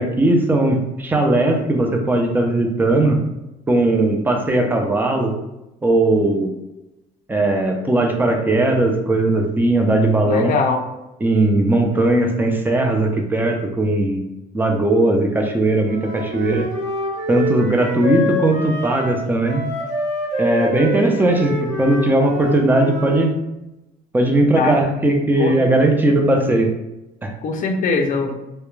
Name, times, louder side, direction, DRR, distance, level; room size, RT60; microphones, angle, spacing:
voice 1, 0.0-3.2 3.7-5.3 5.8-6.5 7.3-10.5 11.2-14.2 14.5-16.7 17.3-19.6 20.4-23.4 24.1-26.7 27.2-27.3, right 2 dB, 10° right, 3 dB, 0.4 m, -18 dB
voice 2, 10.3-10.8 24.6-24.8 25.4-25.6 27.4-28.3, left 4 dB, 50° left, 5 dB, 0.4 m, -21 dB
Wind instrument woodwind instrument, 15.8-23.3, left 1 dB, 45° right, 1.0 m, -26 dB
2.3 x 2.1 x 3.0 m, 0.94 s
cardioid pair, 110°, 17 cm